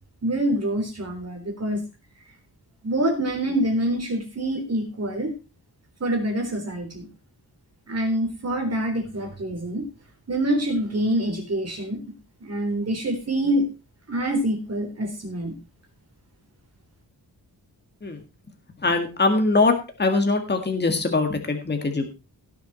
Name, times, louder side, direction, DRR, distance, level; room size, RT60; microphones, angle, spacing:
voice 1, 0.2-1.8 2.8-5.4 6.0-7.1 7.9-9.9 10.3-12.0 12.4-13.7 14.1-15.5, right 1 dB, 40° right, 3 dB, 3.8 m, -26 dB
voice 2, 18.8-19.7 20.0-22.1, left 3 dB, 25° left, 5 dB, 1.8 m, -22 dB
17.0 x 7.2 x 4.3 m, 0.30 s
wide cardioid pair, 180°, 40 cm